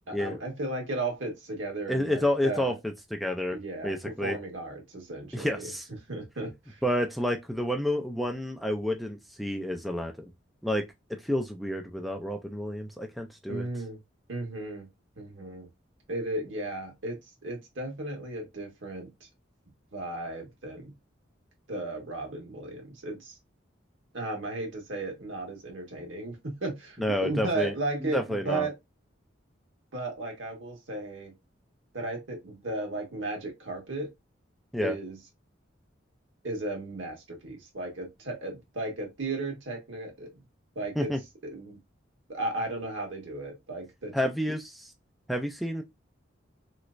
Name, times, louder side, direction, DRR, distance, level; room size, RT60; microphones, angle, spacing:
voice 1, 0.1-2.7 3.5-5.7 6.1-6.8 13.5-14.0 14.3-14.9 15.1-15.7 16.1-19.1 19.9-20.9 21.7-23.4 24.1-28.7 29.9-31.3 31.9-34.1 34.8-35.2 36.4-40.3 40.7-41.1 41.4-41.8 42.3-44.1, right 2 dB, 80° right, 1.4 m, -35 dB
voice 2, 1.9-2.7 3.1-4.4 5.3-5.9 6.8-10.3 10.6-10.9 11.2-13.7 27.0-27.7 28.1-28.7 34.7-34.9 41.0-41.2 44.1-44.9 45.3-45.8, equal, ahead, 0.4 m, -29 dB
3.2 x 3.1 x 2.4 m
head